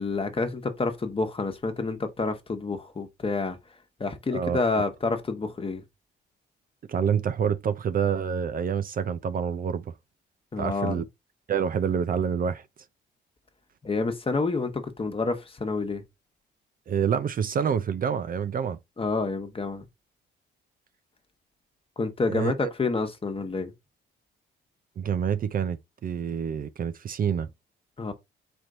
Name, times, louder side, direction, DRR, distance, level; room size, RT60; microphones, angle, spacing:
voice 1, 0.0-3.6 4.0-5.8 10.5-11.0 13.8-16.0 19.0-19.8 22.0-23.7 28.0-28.1, left 3 dB, 30° left, 1.2 m, -28 dB
voice 2, 6.9-9.9 10.6-11.0 11.5-12.6 16.9-18.8 22.3-22.7 25.0-27.5, right 7 dB, 45° right, 0.5 m, -27 dB
4.4 x 3.2 x 3.8 m
cardioid pair, 90°, 20 cm